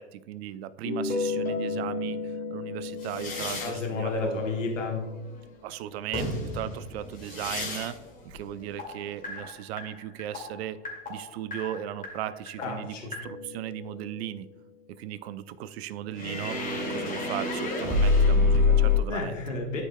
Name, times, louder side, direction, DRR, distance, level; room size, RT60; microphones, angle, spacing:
voice 1, 0.0-4.4 5.6-8.0 8.2-10.8 11.1-14.5 15.0-19.3, right 11 dB, 60° right, 15 dB, 0.6 m, -37 dB
sound 1, 0.8-5.8 6.1-8.0 8.3-14.5 16.1-19.0, left 4 dB, 20° left, 2.2 m, -29 dB
voice 2, 3.6-5.0 12.6-13.1 19.1-19.8, left 3 dB, 90° left, 0 dB, 1.2 m, -31 dB
12.5 x 4.8 x 2.2 m, 1.1 s
hypercardioid pair, 95°, 36 cm